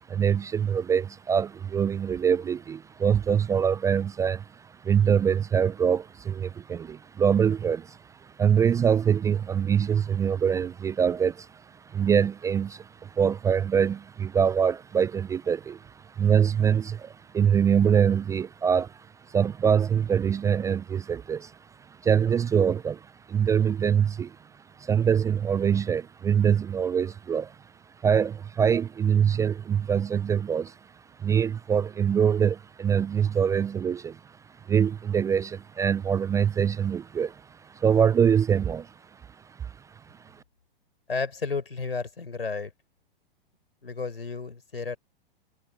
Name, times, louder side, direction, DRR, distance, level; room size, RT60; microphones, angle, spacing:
voice 1, 0.1-24.4 24.8-27.6 28.0-30.8 31.2-38.9 39.6-39.7 40.1-40.2, right 7 dB, 10° right, 0.4 m, -24 dB
voice 2, 41.1-42.7 43.8-45.0, left 4 dB, 85° left, 5.2 m, -32 dB
figure-of-eight pair, 105°, 29 cm